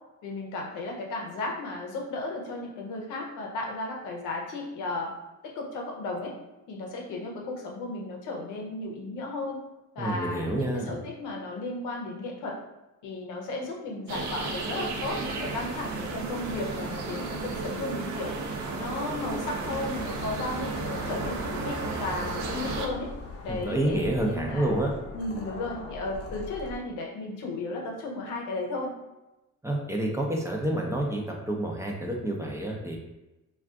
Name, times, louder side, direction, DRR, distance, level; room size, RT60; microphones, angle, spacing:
voice 1, 0.2-5.1 5.4-6.4 6.7-9.6 9.9-12.6 13.0-18.3 18.8-23.1 23.4-24.8 25.1-28.9, left 2 dB, 90° left, 0 dB, 0.7 m, -34 dB
voice 2, 10.0-10.9 23.5-24.9 29.6-33.0, right 1 dB, 10° right, -1 dB, 0.5 m, -28 dB
sound 1, 14.1-22.9, right 3 dB, 65° right, 0.5 m, -33 dB
sound 2, 19.6-26.8, left 3 dB, 50° left, 0.6 m, -42 dB
2.4 x 2.3 x 3.5 m, 1.0 s
cardioid pair, 90°, 30 cm